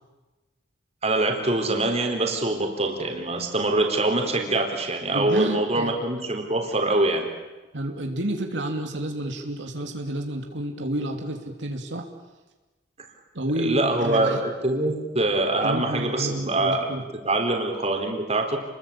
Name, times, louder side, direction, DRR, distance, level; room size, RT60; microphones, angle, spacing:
voice 1, 1.0-7.3 13.6-16.9 17.2-18.6, right 2 dB, 35° right, 4 dB, 4.0 m, -24 dB
voice 2, 5.1-5.9 7.7-12.0 13.3-14.4 15.6-17.0, right 1 dB, 85° right, 3 dB, 3.0 m, -30 dB
29.5 x 22.0 x 8.8 m, 1.2 s
head